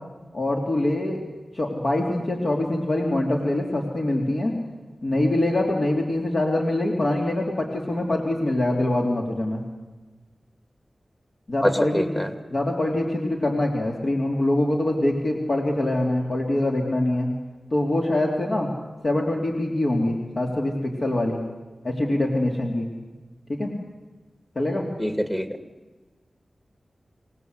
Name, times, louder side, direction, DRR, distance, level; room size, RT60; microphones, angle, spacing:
voice 1, 0.3-1.2 1.5-4.5 5.0-9.6 11.5-12.0 12.5-17.3 17.7-18.7 19.0-20.7 21.0-21.4 21.8-22.9 23.5-23.7 24.5-24.9, left 1 dB, 50° left, 0 dB, 3.1 m, -24 dB
voice 2, 11.6-12.3 25.0-25.5, equal, 15° left, 7 dB, 2.3 m, -24 dB
26.5 x 18.5 x 8.2 m, 1.2 s
wide cardioid pair, 100°, 0 cm